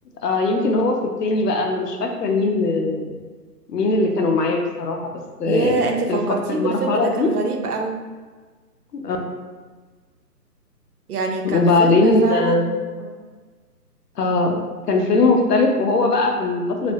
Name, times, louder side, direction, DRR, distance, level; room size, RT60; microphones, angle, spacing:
voice 1, 0.2-3.1 3.7-5.1 5.4-5.8 6.1-6.2 6.5-7.3 8.9-9.2 11.4-12.7 14.2-14.6 14.9-16.9, left 3 dB, 75° left, 2 dB, 0.7 m, -20 dB
voice 2, 5.4-8.0 11.1-13.2, right 3 dB, 65° right, 3 dB, 0.5 m, -25 dB
3.2 x 2.0 x 2.7 m, 1.4 s
hypercardioid pair, 170°, 49 cm